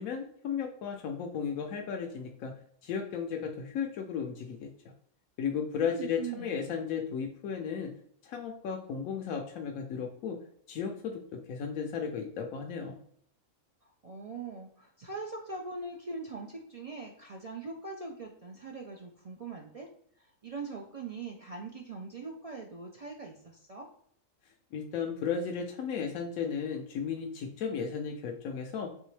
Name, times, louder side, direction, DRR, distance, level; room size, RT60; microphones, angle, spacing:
voice 1, 0.0-2.5 2.8-4.7 5.4-7.9 8.2-10.4 10.7-13.0 24.7-28.9, left 6 dB, 90° left, 2 dB, 1.1 m, -35 dB
voice 2, 5.8-6.8 13.8-19.9 20.2-23.9, right 4 dB, 65° right, 0 dB, 0.3 m, -42 dB
4.4 x 3.4 x 3.2 m, 0.66 s
omnidirectional pair, 1.4 m